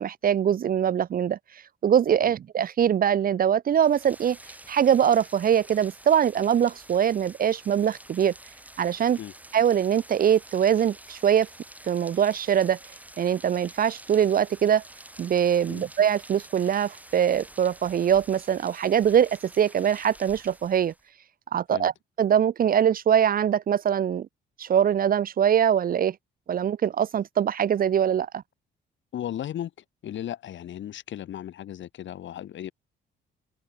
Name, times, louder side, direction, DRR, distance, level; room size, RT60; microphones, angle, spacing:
voice 1, 0.0-1.4 1.8-4.4 4.7-8.3 8.8-9.2 9.5-11.5 11.9-12.8 13.2-14.8 15.2-20.9 21.5-21.9 22.2-24.3 24.6-26.2 26.5-28.4, right 9 dB, 45° right, 0.6 m, -22 dB
Rain, 3.7-21.1, right 1 dB, 5° right, 6.0 m, -48 dB
voice 2, 29.1-29.7 30.0-32.7, left 11 dB, 70° left, 4.3 m, -35 dB
cardioid pair, 90°, 20 cm